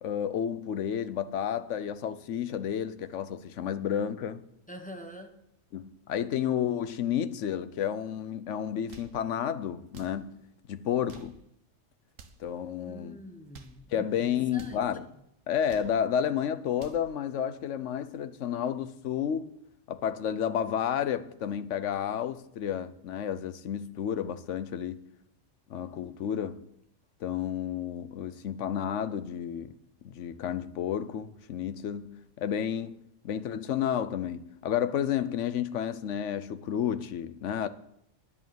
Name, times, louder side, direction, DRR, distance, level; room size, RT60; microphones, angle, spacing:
voice 1, 0.0-4.4 5.7-10.4 10.7-11.3 12.4-13.2 13.9-15.1 15.5-19.5 19.9-25.0 25.7-26.6 27.2-29.7 30.0-33.0 33.2-37.7, left 9 dB, 70° left, 1.1 m, -31 dB
voice 2, 4.7-5.3 12.8-14.9, equal, 5° left, 1.2 m, -45 dB
sound 1, 8.7-9.2 9.9-10.2 10.9-11.4 12.1-12.5 13.3-13.8 14.5-14.8 15.5-16.0 16.6-17.1, right 5 dB, 90° right, 1.4 m, -52 dB
11.0 x 7.1 x 8.6 m
omnidirectional pair, 1.3 m